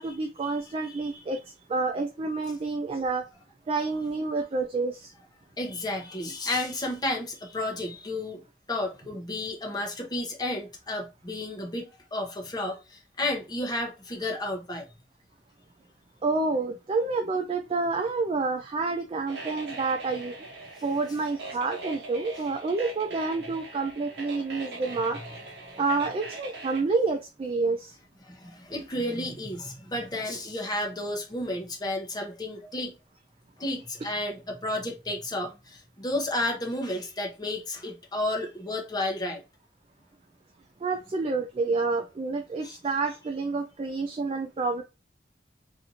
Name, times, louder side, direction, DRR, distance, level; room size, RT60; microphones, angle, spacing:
voice 1, 0.0-3.2 3.7-5.1 16.2-20.3 20.8-25.2 25.8-28.0 40.8-44.8, right 3 dB, 30° right, 0.3 m, -28 dB
voice 2, 0.8-1.2 5.6-8.4 8.7-14.8 28.2-32.9 33.6-39.4 42.6-42.8, left 1 dB, 20° left, 0.7 m, -32 dB
sound 1, 19.3-26.8, right 2 dB, 65° right, 0.7 m, -41 dB
2.6 x 2.5 x 2.8 m
head